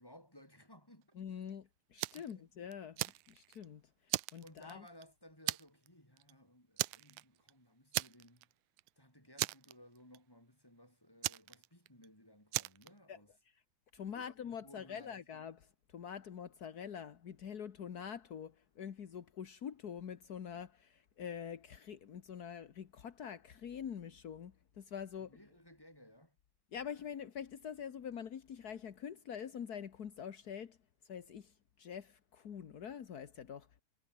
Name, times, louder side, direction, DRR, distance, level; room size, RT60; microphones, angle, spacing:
voice 1, 0.0-1.2 2.1-2.5 4.4-8.5 9.0-13.3 13.9-15.3 25.2-26.4, left 1 dB, 5° left, 7.7 m, -60 dB
voice 2, 1.1-4.9 13.1-13.2 13.9-25.4 26.7-30.8 31.0-33.8, left 8 dB, 55° left, 1.0 m, -45 dB
Fire, 2.0-2.3 2.7-3.6 4.1-5.0 5.5-5.9 6.2-6.3 6.8-7.5 7.9-8.5 8.8-8.9 9.4-10.2 11.2-12.1 12.5-12.9, right 19 dB, 80° right, 2.0 m, -37 dB
omnidirectional pair, 3.5 m